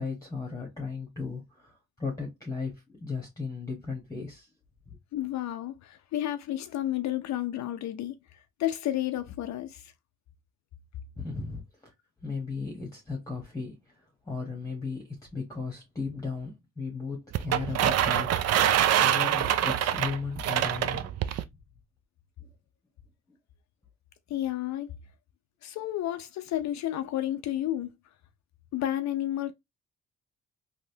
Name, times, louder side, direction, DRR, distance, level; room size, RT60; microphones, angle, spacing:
voice 1, 0.0-4.5 4.9-5.0 11.2-11.9 12.2-14.0 14.2-21.1, left 4 dB, 10° left, 1.0 m, -36 dB
voice 2, 5.1-8.2 8.6-9.9 24.3-24.9 25.6-27.9 28.7-29.5, left 13 dB, 65° left, 0.5 m, -31 dB
sound 1, 17.3-21.4, right 10 dB, 55° right, 0.4 m, -25 dB
3.3 x 2.6 x 2.7 m
cardioid pair, 90°, 30 cm